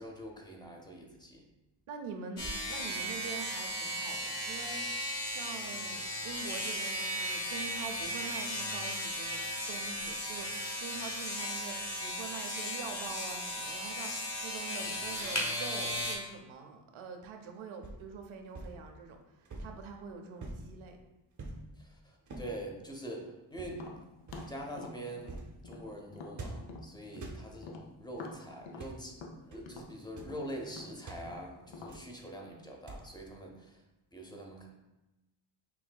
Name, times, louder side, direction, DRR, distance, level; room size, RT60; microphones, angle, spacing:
voice 1, 0.0-1.4 21.8-23.9 24.5-25.4 25.6-33.8 34.1-34.7, right 1 dB, 10° left, 0 dB, 0.6 m, -44 dB
voice 2, 1.9-9.4 9.7-14.1 14.4-19.2 19.6-21.0 27.1-27.4, right 5 dB, 80° right, 4 dB, 0.7 m, -45 dB
sound 1, 2.4-16.2, equal, 35° left, 1.1 m, -36 dB
sound 2, 15.9-16.3 17.8-18.1 18.5-18.8 19.5-19.8 20.4-20.7 21.4-21.7 22.3-22.6 23.5-23.9 24.3-24.6 25.2-25.6 26.3-26.8 27.1-27.5 28.6-29.0 29.5-29.7 30.0-30.4 31.1-31.3 31.9-32.2 32.9-33.2, right 2 dB, 40° right, 0.6 m, -45 dB
Tap, 23.7-27.3 27.6-32.0, left 3 dB, 65° left, 0.6 m, -47 dB
5.7 x 2.6 x 2.2 m, 1.0 s
wide cardioid pair, 105°, 48 cm